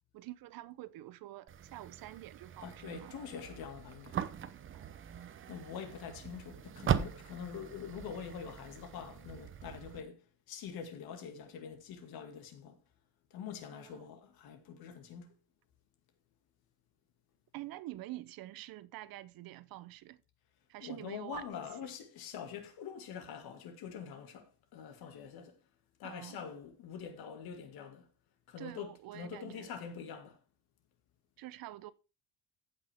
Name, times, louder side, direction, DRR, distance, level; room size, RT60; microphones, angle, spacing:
voice 1, 0.1-3.1 4.7-5.0 13.7-14.1 17.5-20.2 20.7-21.7 26.0-26.4 28.6-29.8 31.4-31.9, right 16 dB, 70° right, 0.8 m, -47 dB
sound 1, 1.5-10.0, right 9 dB, 35° right, 0.7 m, -40 dB
voice 2, 2.6-4.2 5.5-10.2 10.5-12.8 13.3-15.3 20.8-25.6 26.0-28.1 28.5-28.9 29.1-30.4, left 7 dB, 80° left, 2.2 m, -45 dB
15.0 x 6.0 x 3.5 m
cardioid pair, 155°, 36 cm